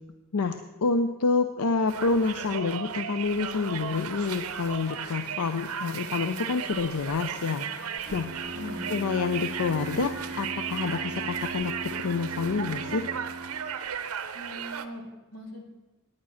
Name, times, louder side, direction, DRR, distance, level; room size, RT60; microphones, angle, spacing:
voice 1, 0.3-7.7 8.1-8.3 8.9-10.1 10.4-11.7 12.0-13.0, left 4 dB, 90° left, 8 dB, 0.5 m, -28 dB
Conversation, 1.9-14.8, right 8 dB, 80° right, 0.7 m, -35 dB
Singing, 4.9-12.4, left 5 dB, 35° left, 0.6 m, -51 dB
Bowed string instrument, 8.1-13.9, right 2 dB, 30° right, 0.8 m, -39 dB
voice 2, 8.5-8.9 14.3-15.6, left 1 dB, 65° left, 0 dB, 2.2 m, -40 dB
9.7 x 8.8 x 5.6 m, 1.1 s
head